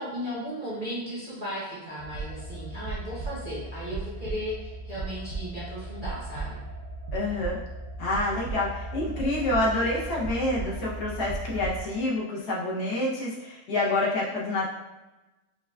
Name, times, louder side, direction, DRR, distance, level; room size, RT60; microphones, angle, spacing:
voice 1, 0.0-6.6, equal, 40° right, -9 dB, 0.7 m, -35 dB
sound 1, 2.0-11.8, right 3 dB, 75° right, 1.2 m, -36 dB
voice 2, 7.1-7.6 8.0-14.7, left 2 dB, 65° left, -5 dB, 1.2 m, -27 dB
5.5 x 2.3 x 2.2 m, 1.1 s
omnidirectional pair, 2.0 m